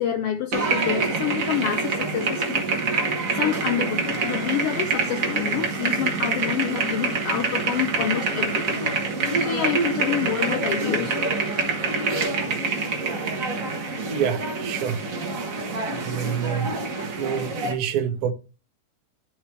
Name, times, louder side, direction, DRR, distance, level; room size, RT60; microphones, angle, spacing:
voice 1, 0.0-2.6 3.3-8.8 9.1-11.2, left 9 dB, 80° left, 1.3 m, -28 dB
sound 1, 0.5-17.7, right 4 dB, 45° right, 1.0 m, -26 dB
voice 2, 14.1-15.0 15.9-16.9 17.2-18.3, right 8 dB, 90° right, 2.2 m, -27 dB
12.0 x 4.4 x 3.1 m
omnidirectional pair, 3.3 m